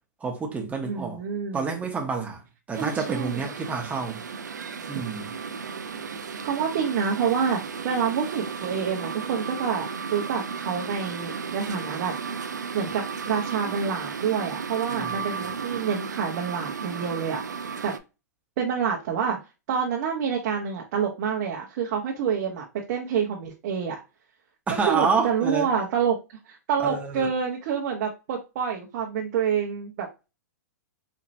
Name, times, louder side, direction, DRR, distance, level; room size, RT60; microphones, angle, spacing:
voice 1, 0.2-1.2 1.5-2.4 2.7-4.2 4.9-5.3 14.9-15.2 24.7-25.7 26.8-27.3, right 5 dB, 15° right, 1.0 m, -28 dB
voice 2, 0.8-1.7 2.8-3.4 5.9-6.0 6.4-12.1 12.7-17.9 18.6-19.4 19.7-24.0 24.7-26.2 26.5-30.1, right 7 dB, 55° right, 1.0 m, -27 dB
sound 1, 2.7-18.0, right 5 dB, 90° right, 0.4 m, -34 dB
4.3 x 2.9 x 2.6 m
hypercardioid pair, 115°, 9 cm